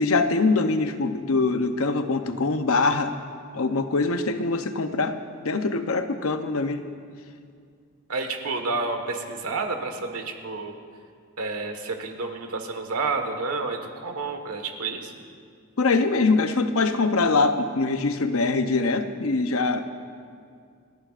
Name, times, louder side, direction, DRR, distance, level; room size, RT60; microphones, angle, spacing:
voice 1, 0.0-3.1 3.5-5.2 5.4-6.8 15.8-19.9, left 3 dB, 70° left, 8 dB, 0.7 m, -23 dB
voice 2, 8.1-10.7 11.4-15.1, right 3 dB, 85° right, 4 dB, 1.5 m, -30 dB
29.5 x 11.5 x 2.5 m, 2.2 s
head